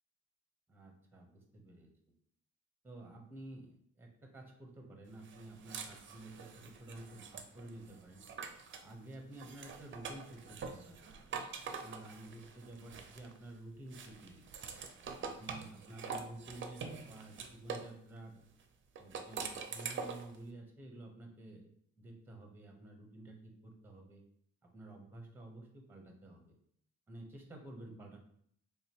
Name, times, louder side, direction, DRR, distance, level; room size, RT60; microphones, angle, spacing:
voice 1, 0.7-1.9 2.8-8.2 8.8-11.2 11.6-14.5 15.2-18.4 19.0-21.7 22.0-24.2 24.7-26.6 27.1-28.2, right 2 dB, 5° right, 1 dB, 0.8 m, -51 dB
Joxa med galgar, 5.2-8.9 9.3-13.5 13.9-17.9 19.0-20.4, right 5 dB, 40° right, 0.5 m, -45 dB
3.6 x 2.8 x 2.8 m, 0.66 s
cardioid pair, 90°, 30 cm